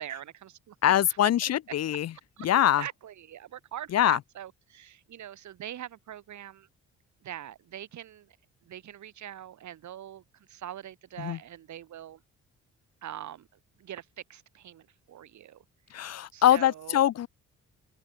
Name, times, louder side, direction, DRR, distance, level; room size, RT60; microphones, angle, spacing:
voice 1, 0.0-0.8 1.4-1.5 1.9-2.0 2.4-6.7 7.2-8.4 8.7-10.2 10.5-12.2 13.0-13.5 13.8-15.6 16.3-17.0, right 11 dB, 70° right, 4.6 m, -43 dB
voice 2, 0.8-2.1 2.4-2.8 3.9-4.2 11.2-11.4 15.9-17.3, left 11 dB, 55° left, 0.8 m, -23 dB
open air
cardioid pair, 90°, 30 cm